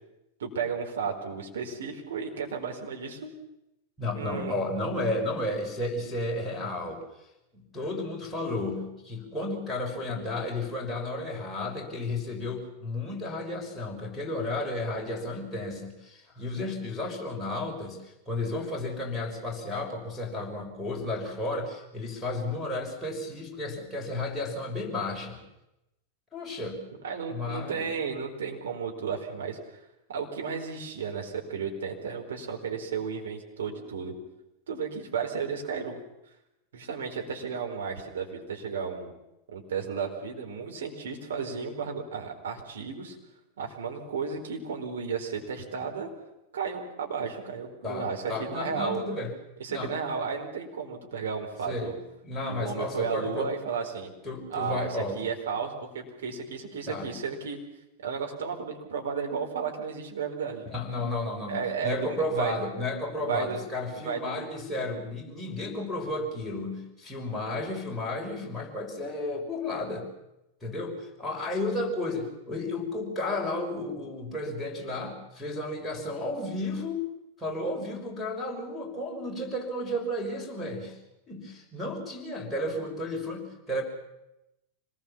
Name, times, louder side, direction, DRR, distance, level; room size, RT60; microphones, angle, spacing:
voice 1, 0.4-3.3 4.1-4.6 27.0-29.8 30.1-34.1 34.7-36.0 36.7-39.1 39.5-43.2 43.6-46.1 46.5-49.0 49.6-52.0 52.5-54.1 54.5-54.9 55.1-57.6 58.0-60.7 61.5-62.6 63.3-63.6 63.9-64.5, right 6 dB, 65° right, 1 dB, 4.4 m, -33 dB
voice 2, 4.0-7.0 7.5-25.4 26.3-26.8 27.3-27.9 47.8-49.3 49.7-50.0 51.7-51.9 52.2-53.5 54.2-55.2 56.9-57.2 60.7-70.1 70.6-77.1 77.4-81.0 81.3-83.8, left 2 dB, 5° left, -2 dB, 5.9 m, -33 dB
25.5 x 20.0 x 7.3 m, 0.89 s
figure-of-eight pair, 90°, 0 cm